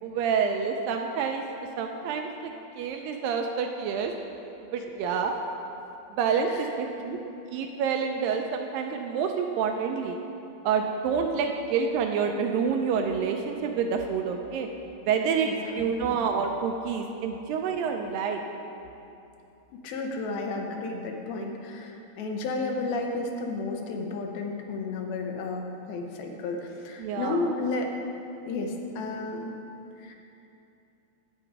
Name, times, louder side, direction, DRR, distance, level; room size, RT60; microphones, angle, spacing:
voice 1, 0.0-1.4 1.8-4.1 4.7-5.3 6.1-7.2 7.5-10.2 10.6-14.7 15.0-15.5 15.8-18.4 27.0-27.5, right 6 dB, 80° right, 4 dB, 2.1 m, -28 dB
voice 2, 15.5-15.9 19.7-27.9 28.5-29.5 30.0-30.2, left 3 dB, 80° left, 2 dB, 2.8 m, -32 dB
9.8 x 8.8 x 4.7 m, 2.8 s
omnidirectional pair, 4.3 m